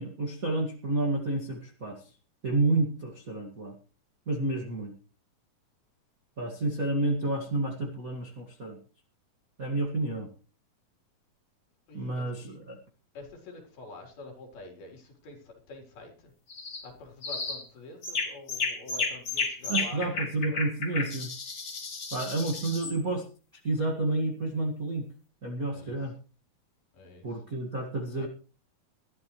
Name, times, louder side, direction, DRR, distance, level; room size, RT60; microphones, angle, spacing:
voice 1, 0.0-2.0 2.4-3.7 4.3-4.9 6.4-8.8 9.6-10.3 11.9-12.8 19.7-21.3 22.1-23.2 23.6-25.0 25.4-26.1 27.2-28.3, right 2 dB, 30° right, 0 dB, 1.7 m, -30 dB
voice 2, 11.9-12.6 13.1-16.3 16.8-20.2 20.5-20.6 22.5-22.7 25.7-26.0 26.9-27.4 28.2-28.3, left 2 dB, 90° left, 2 dB, 5.8 m, -47 dB
sound 1, 16.5-16.8 17.2-17.6 18.0-23.0, left 4 dB, 35° left, 3.1 m, -33 dB
21.0 x 13.0 x 3.2 m, 0.37 s
omnidirectional pair, 4.2 m